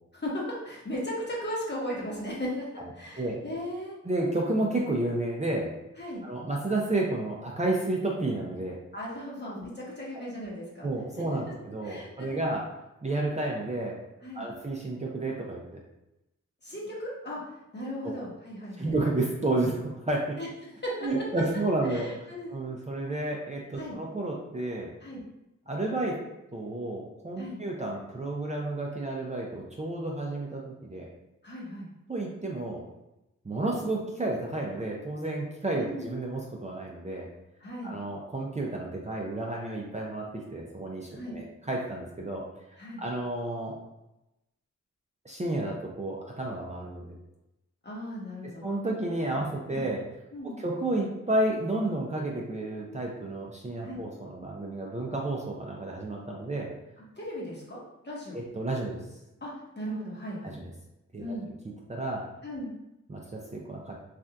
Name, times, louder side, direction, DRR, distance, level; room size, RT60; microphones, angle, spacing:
voice 1, 0.1-2.7 2.9-3.9 6.0-6.3 8.9-10.9 11.8-12.5 14.2-14.5 16.6-17.4 17.7-18.9 20.4-20.5 20.8-21.0 21.9-22.6 23.7-24.0 25.0-25.2 27.4-27.6 31.4-31.9 35.8-36.1 37.6-38.0 41.1-41.4 42.8-43.0 47.8-48.6 49.7-49.8 50.3-50.6 53.8-54.0 57.0-57.8 58.0-58.4 59.4-60.6 61.2-61.5 62.4-62.7, equal, 35° left, -5 dB, 1.2 m, -37 dB
voice 2, 4.0-5.7 6.2-8.8 10.1-10.3 10.8-12.7 13.0-14.0 14.3-15.8 18.0-18.2 18.8-20.4 21.0-22.1 22.5-24.9 25.7-26.2 26.5-31.1 32.1-32.8 33.4-37.3 37.8-42.4 43.0-43.8 45.2-47.1 48.4-50.0 50.4-56.7 58.3-59.0 60.4-60.7 61.1-61.4 61.9-62.3 63.1-63.9, right 2 dB, 25° right, -2 dB, 0.5 m, -31 dB
3.3 x 2.5 x 2.3 m, 0.93 s
cardioid pair, 45°, 30 cm